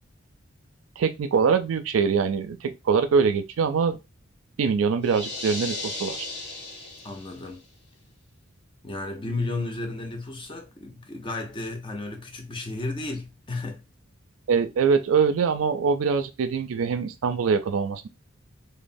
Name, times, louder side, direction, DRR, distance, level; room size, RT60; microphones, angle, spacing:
voice 1, 1.0-4.0 4.6-6.2 14.5-18.1, right 5 dB, 80° right, 0.4 m, -23 dB
sound 1, 5.0-7.5, left 2 dB, 60° left, 0.8 m, -35 dB
voice 2, 7.0-7.6 8.8-13.8, left 2 dB, 25° left, 0.5 m, -33 dB
3.0 x 2.0 x 2.5 m
head